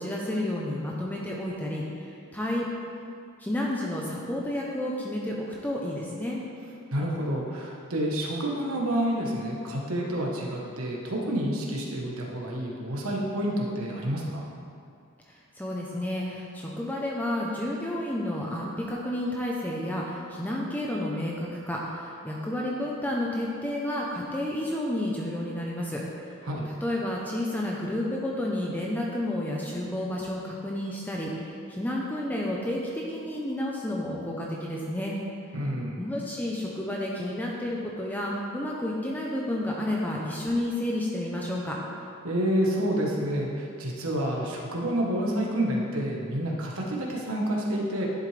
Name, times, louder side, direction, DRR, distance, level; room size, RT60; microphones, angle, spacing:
voice 1, 0.0-2.7 3.4-6.4 15.3-26.4 26.7-35.1 36.0-41.8, left 1 dB, 10° left, -3 dB, 0.7 m, -31 dB
voice 2, 6.9-14.4 26.4-26.7 35.5-36.0 42.2-48.0, right 1 dB, 90° right, -2 dB, 1.3 m, -29 dB
11.0 x 7.7 x 3.4 m, 2.4 s
head